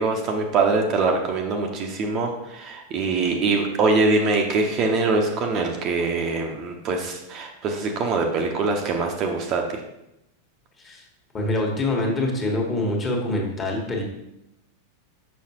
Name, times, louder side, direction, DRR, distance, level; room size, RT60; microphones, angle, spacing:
voice 1, 0.0-9.8, right 3 dB, 35° right, 3 dB, 0.8 m, -23 dB
voice 2, 11.3-14.0, left 2 dB, 20° left, 0 dB, 1.5 m, -25 dB
6.4 x 5.5 x 2.9 m, 0.85 s
figure-of-eight pair, 90°, 0 cm